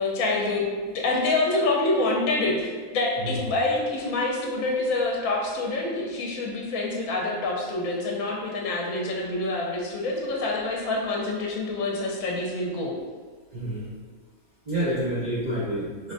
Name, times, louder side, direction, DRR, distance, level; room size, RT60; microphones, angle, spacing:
voice 1, 0.0-13.0, left 2 dB, 70° left, -1 dB, 1.0 m, -26 dB
voice 2, 13.5-13.9 14.7-16.1, right 1 dB, 65° right, -8 dB, 0.4 m, -28 dB
4.8 x 2.1 x 2.5 m, 1.5 s
omnidirectional pair, 1.5 m